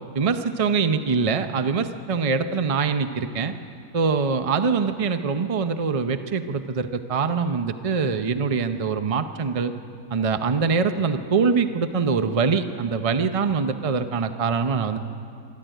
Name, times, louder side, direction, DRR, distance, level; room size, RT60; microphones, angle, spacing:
voice 1, 0.1-3.5 3.9-9.7 10.1-15.0, right 5 dB, 60° right, 9 dB, 0.3 m, -23 dB
25.0 x 13.0 x 9.1 m, 2.5 s
omnidirectional pair, 1.7 m